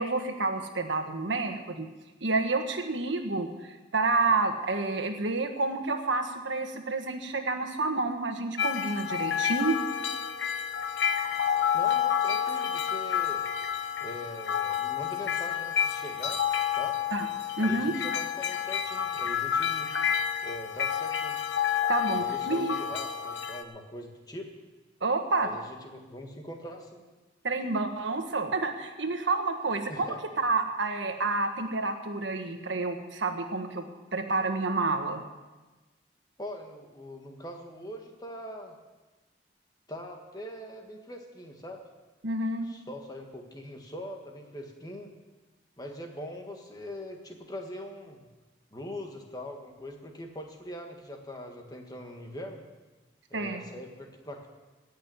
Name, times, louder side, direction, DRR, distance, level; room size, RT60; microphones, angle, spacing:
voice 1, 0.0-1.9 2.2-9.8 17.1-17.2 17.6-17.9 21.9-22.7 25.0-25.5 27.4-30.1 30.4-33.8 34.1-35.2 42.2-42.7 53.3-53.6, right 3 dB, 85° right, 5 dB, 1.5 m, -29 dB
sound 1, 8.6-23.6, left 8 dB, 80° left, 1.1 m, -29 dB
voice 2, 11.7-13.5 14.0-16.4 16.8-17.0 17.6-19.9 20.4-21.4 22.1-24.5 25.4-27.0 29.9-30.2 36.4-38.8 39.9-41.8 42.7-45.1 45.8-48.2 48.7-52.6 53.3-54.5, left 1 dB, 20° left, 2 dB, 1.7 m, -42 dB
18.0 x 6.6 x 9.3 m, 1.2 s
head